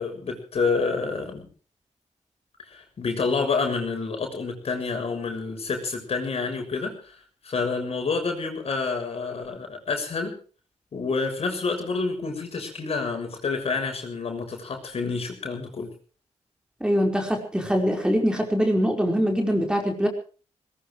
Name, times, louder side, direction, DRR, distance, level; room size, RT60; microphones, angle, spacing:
voice 1, 0.0-1.5 2.7-7.1 7.4-10.3 10.9-15.9, left 4 dB, 55° left, 4 dB, 6.6 m, -28 dB
voice 2, 16.8-20.1, equal, 5° right, 2 dB, 4.8 m, -23 dB
21.5 x 20.5 x 3.3 m, 0.39 s
cardioid pair, 100°, 12 cm